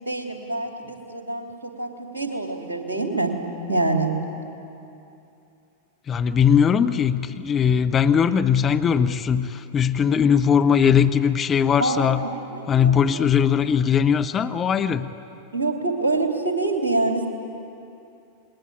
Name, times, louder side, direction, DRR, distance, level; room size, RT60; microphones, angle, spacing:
voice 1, 0.0-3.4 3.7-4.1 11.8-13.3 15.5-17.3, right 2 dB, 75° right, 3 dB, 2.9 m, -26 dB
voice 2, 6.1-12.2 12.7-15.1, left 7 dB, 25° left, 9 dB, 0.8 m, -20 dB
27.5 x 21.0 x 8.9 m, 2.7 s
figure-of-eight pair, 90°, 0 cm